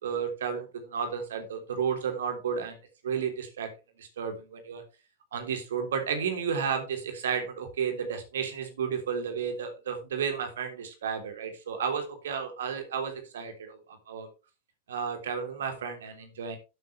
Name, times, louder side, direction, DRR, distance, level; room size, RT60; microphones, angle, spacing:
voice 1, 0.0-2.8 3.0-3.7 4.0-4.8 5.3-14.3 14.9-16.6, right 7 dB, 65° right, 5 dB, 3.4 m, -32 dB
12.0 x 9.5 x 3.4 m, 0.30 s
figure-of-eight pair, 90°, 0 cm